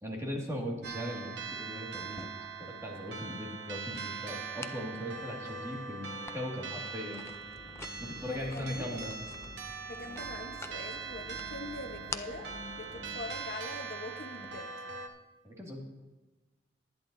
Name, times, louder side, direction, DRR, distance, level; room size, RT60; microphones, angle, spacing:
voice 1, 0.0-2.5 2.8-7.3 8.0-9.2 15.4-15.8, equal, 15° right, -2 dB, 2.0 m, -39 dB
sound 1, 0.8-15.1, right 5 dB, 75° right, 1.2 m, -42 dB
sound 2, 2.0-14.5, left 3 dB, 15° left, 0.4 m, -50 dB
sound 3, 7.2-13.5, left 1 dB, 40° right, 4.0 m, -51 dB
voice 2, 8.3-9.0 9.9-14.7, left 2 dB, 60° left, 4 dB, 1.0 m, -43 dB
18.5 x 10.5 x 2.7 m, 1.2 s
head